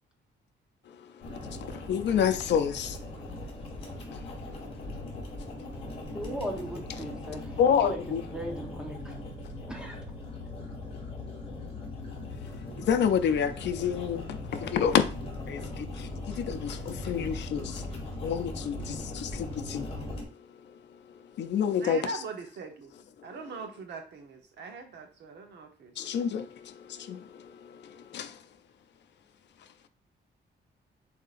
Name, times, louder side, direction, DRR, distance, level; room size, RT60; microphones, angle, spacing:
sound 1, 1.2-20.2, left 2 dB, 30° left, 1.6 m, -39 dB
voice 1, 1.5-3.0 4.1-4.2 4.9-5.0 7.6-8.2 12.8-15.0 15.5-17.8 18.2-19.9 21.4-22.2 26.0-28.4, left 8 dB, 70° left, 0.5 m, -29 dB
voice 2, 6.1-8.0 8.3-9.2 9.7-10.1, equal, 5° right, 0.9 m, -38 dB
voice 3, 21.8-22.9 23.2-25.9, right 3 dB, 65° right, 0.9 m, -41 dB
7.6 x 2.8 x 2.5 m
wide cardioid pair, 180°, 19 cm